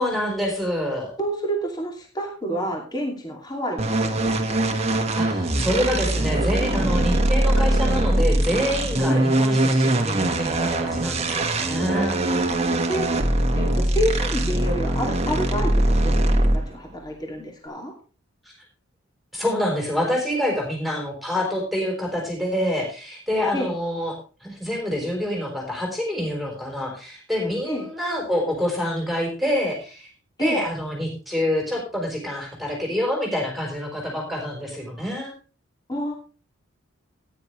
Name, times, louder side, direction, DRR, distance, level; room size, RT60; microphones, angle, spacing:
voice 1, 0.0-1.1 5.1-12.2 18.4-18.5 19.3-30.1 30.4-35.3, left 1 dB, ahead, -1 dB, 3.9 m, -26 dB
voice 2, 1.2-4.8 9.1-9.2 12.5-12.6 12.9-13.1 13.6-17.9 23.5-23.7 27.7-27.9 30.4-30.6 35.9-36.1, equal, 20° left, 1 dB, 2.6 m, -29 dB
sound 1, 3.8-16.8, right 1 dB, 30° right, 1.5 m, -22 dB
16.0 x 10.0 x 3.2 m, 0.35 s
head